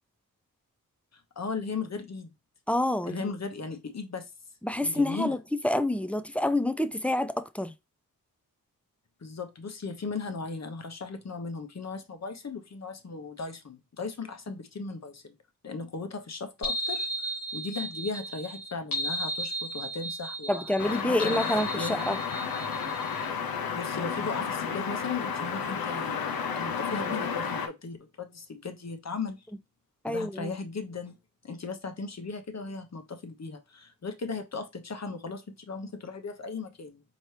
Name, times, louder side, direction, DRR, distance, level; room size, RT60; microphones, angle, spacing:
voice 1, 1.1-2.3 3.1-4.3 4.8-5.4 9.2-15.3 15.6-17.1 17.5-20.7 21.1-22.0 23.7-29.5 30.1-31.2 31.4-37.0, left 4 dB, 50° left, 1.0 m, -37 dB
voice 2, 2.7-3.3 4.6-5.4 5.6-7.7 20.5-22.2 30.0-30.5, left 1 dB, 5° left, 0.5 m, -27 dB
sound 1, 16.6-23.3, right 1 dB, 70° left, 1.4 m, -35 dB
sound 2, 20.8-27.7, left 6 dB, 85° left, 0.7 m, -32 dB
4.3 x 3.0 x 3.2 m
cardioid pair, 55°, 35 cm